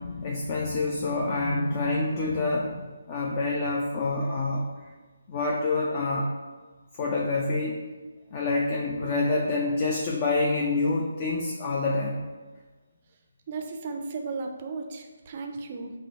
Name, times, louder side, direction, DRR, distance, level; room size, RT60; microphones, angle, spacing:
voice 1, 0.0-4.6 5.3-6.3 7.0-7.8 8.3-12.2, left 3 dB, 30° left, -2 dB, 0.4 m, -27 dB
voice 2, 13.5-15.9, right 4 dB, 35° right, 4 dB, 0.4 m, -35 dB
5.1 x 2.2 x 4.0 m, 1.3 s
figure-of-eight pair, 145°, 0 cm